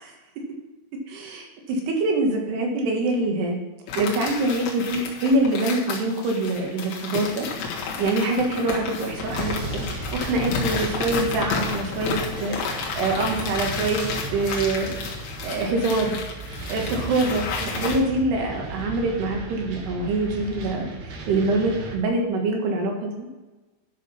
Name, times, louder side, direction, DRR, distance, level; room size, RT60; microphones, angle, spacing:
voice 1, 1.1-3.6 3.9-7.5 7.8-9.5 9.9-15.2 15.4-16.2 16.7-23.3, right 2 dB, 65° right, 1 dB, 3.3 m, -25 dB
sound 1, 3.9-18.0, left 5 dB, 75° left, 3.9 m, -31 dB
sound 2, 9.2-22.0, right 2 dB, 85° right, 1.6 m, -35 dB
11.5 x 6.2 x 5.8 m, 1.2 s
omnidirectional pair, 5.7 m